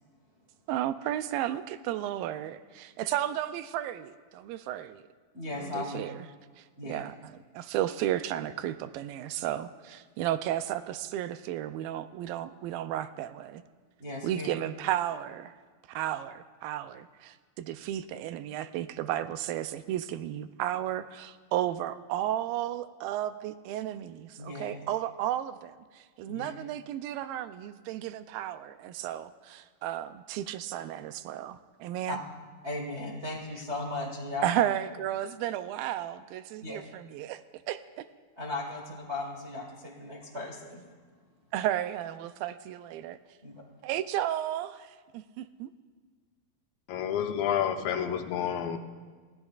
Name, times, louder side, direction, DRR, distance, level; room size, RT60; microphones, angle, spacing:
voice 1, 0.7-5.0 5.6-6.3 6.6-13.6 14.2-15.5 15.9-32.2 34.4-38.1 41.5-43.2 43.8-45.7, right 12 dB, 90° right, 11 dB, 2.4 m, -33 dB
voice 2, 5.3-6.0 6.8-7.0 14.0-14.5 24.4-24.8 26.2-26.5 32.1-32.2 32.6-34.6 36.6-36.8 38.4-40.8 43.4-43.6, left 2 dB, 60° right, -2 dB, 0.7 m, -37 dB
voice 3, 46.9-48.8, left 9 dB, 80° left, 6 dB, 2.5 m, -29 dB
29.5 x 15.0 x 2.4 m, 1.5 s
omnidirectional pair, 4.1 m